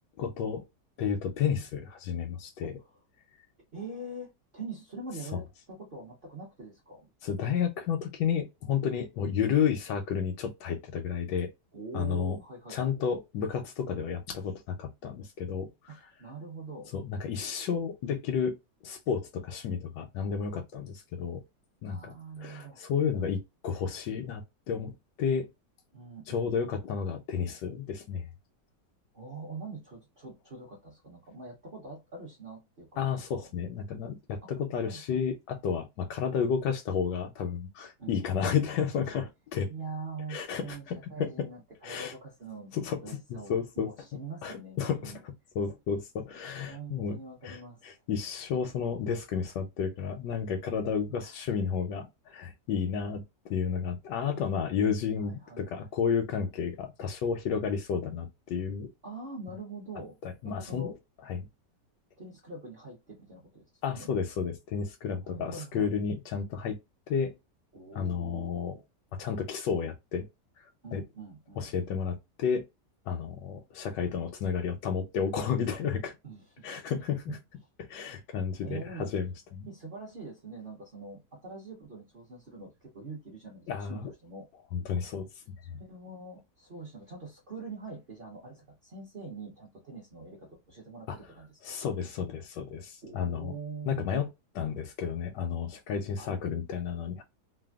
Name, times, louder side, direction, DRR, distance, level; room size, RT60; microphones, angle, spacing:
voice 1, 0.2-0.6 1.0-2.7 7.2-11.5 11.9-12.4 12.7-16.0 16.9-18.6 18.8-21.4 21.8-24.9 25.2-25.5 26.3-28.3 33.0-39.7 40.3-41.3 41.8-42.1 42.7-43.9 44.4-47.2 47.4-58.9 60.2-60.9 61.2-61.5 63.8-66.8 67.1-67.3 67.9-68.8 69.1-70.3 70.6-71.0 71.6-72.6 73.1-76.1 76.6-77.4 77.8-79.7 83.7-84.1 84.7-85.4 91.1-91.2 91.6-93.5 93.9-94.3 94.5-97.2, left 7 dB, 85° left, 1.2 m, -32 dB
voice 2, 2.6-3.0 3.7-7.1 11.7-12.9 15.9-16.9 21.9-22.8 25.9-26.5 29.1-33.5 34.4-34.5 34.8-35.3 38.0-38.2 39.6-42.7 43.0-45.2 46.6-47.9 51.1-51.4 54.8-54.9 55.2-55.9 59.0-60.2 60.4-60.9 62.2-64.1 65.2-65.9 67.7-68.8 70.8-71.7 76.2-77.4 78.6-79.1 79.7-84.5 85.7-91.8 93.0-94.1 96.2-96.3, right 3 dB, 45° right, 0.8 m, -44 dB
3.3 x 2.1 x 2.3 m
omnidirectional pair, 1.8 m